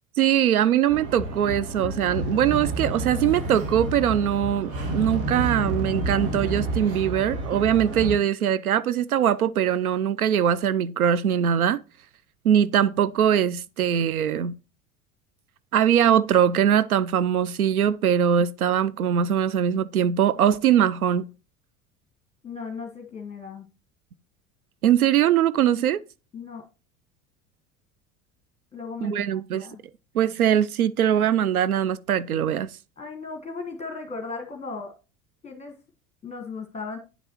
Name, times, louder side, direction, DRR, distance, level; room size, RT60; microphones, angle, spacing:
voice 1, 0.2-11.8 12.4-14.5 15.7-21.3 24.8-26.0 29.0-29.7 30.1-32.7, right 9 dB, 85° right, 0.5 m, -22 dB
sound 1, 0.9-8.2, right 2 dB, 65° right, 2.1 m, -30 dB
voice 2, 22.4-23.7 26.3-26.6 28.7-29.8 33.0-34.9 35.4-35.7 36.2-37.0, left 4 dB, 15° left, 1.5 m, -36 dB
10.0 x 7.7 x 3.0 m
figure-of-eight pair, 70°, 42 cm